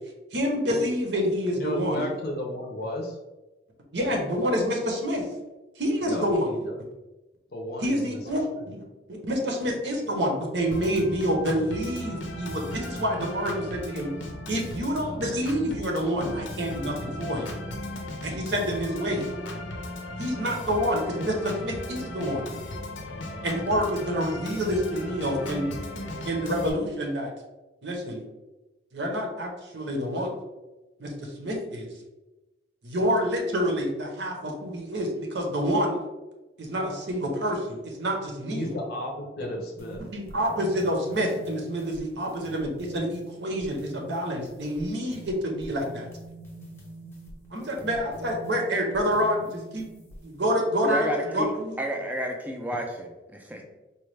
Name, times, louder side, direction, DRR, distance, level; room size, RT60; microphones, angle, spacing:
voice 1, 0.3-2.1 3.9-5.2 5.8-6.6 7.8-14.1 14.5-17.5 18.2-19.3 20.2-22.5 23.4-25.7 26.2-27.3 27.8-28.2 28.9-30.3 31.0-31.1 31.4-31.9 32.8-36.0 36.6-38.7 40.0-46.1 47.5-49.9 50.2-51.1 51.3-51.8, equal, 65° right, 1 dB, 0.8 m, -27 dB
voice 2, 1.5-3.2 6.0-6.2 6.6-6.8 7.5-8.2 8.5-8.6 38.5-40.0, left 1 dB, 55° left, 0 dB, 0.6 m, -33 dB
Organ, 10.7-26.7, left 1 dB, 90° left, 0.6 m, -36 dB
sound 1, 39.8-50.5, right 1 dB, 15° left, 0.7 m, -45 dB
voice 3, 50.8-51.5 51.8-53.6, right 1 dB, 10° right, 3 dB, 0.4 m, -31 dB
4.2 x 2.3 x 3.2 m, 1.1 s
head